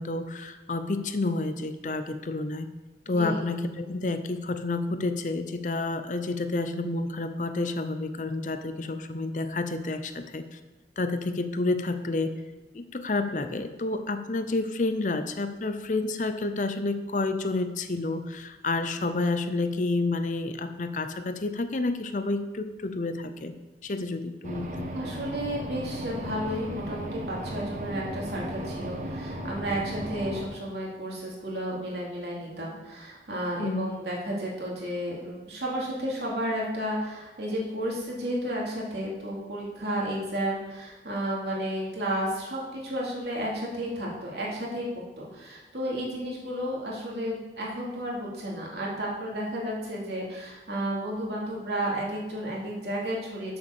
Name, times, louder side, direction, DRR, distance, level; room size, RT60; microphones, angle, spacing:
voice 1, 0.0-2.7 3.1-10.6 11.0-12.3 12.7-23.5 23.8-24.9 33.6-33.9, left 2 dB, 45° left, 9 dB, 0.6 m, -29 dB
voice 2, 3.1-3.5 24.9-44.9 45.2-53.6, equal, 70° right, -3 dB, 2.7 m, -32 dB
sound 1, 24.4-30.4, equal, 45° right, 1.1 m, -36 dB
7.1 x 6.9 x 6.7 m, 1.2 s
head